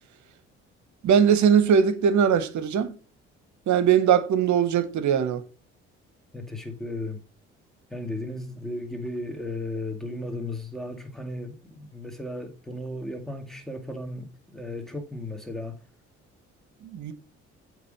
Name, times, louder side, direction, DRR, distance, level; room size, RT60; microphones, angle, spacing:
voice 1, 1.0-2.9 3.7-5.4 16.8-17.1, right 7 dB, 60° right, 1.1 m, -20 dB
voice 2, 6.3-7.2 7.9-15.8, left 1 dB, ahead, 2.1 m, -35 dB
8.0 x 3.5 x 6.4 m
hypercardioid pair, 50°, 33 cm